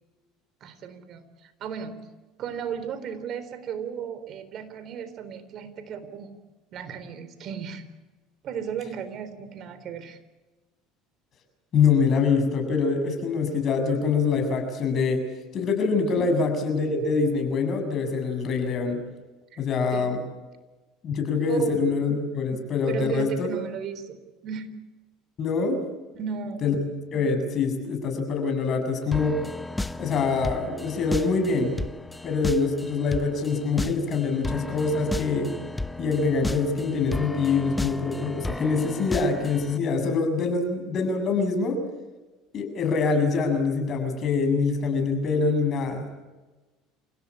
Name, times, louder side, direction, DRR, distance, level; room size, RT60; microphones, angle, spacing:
voice 1, 0.6-2.0 2.4-6.3 6.7-7.8 8.4-10.2 16.2-16.3 19.9-20.1 21.5-21.7 22.9-24.8 26.1-26.7, right 7 dB, 50° right, 12 dB, 3.9 m, -35 dB
voice 2, 11.7-15.2 15.5-19.0 19.6-20.2 21.0-23.5 25.4-25.8 26.6-26.8 27.1-29.4 30.0-31.8 32.2-35.5 36.0-41.8 42.5-46.1, left 4 dB, 45° left, 6 dB, 7.2 m, -24 dB
sound 1, 29.1-39.8, left 2 dB, 10° left, 1.2 m, -34 dB
28.5 x 17.0 x 8.6 m, 1.2 s
hypercardioid pair, 85°, 0 cm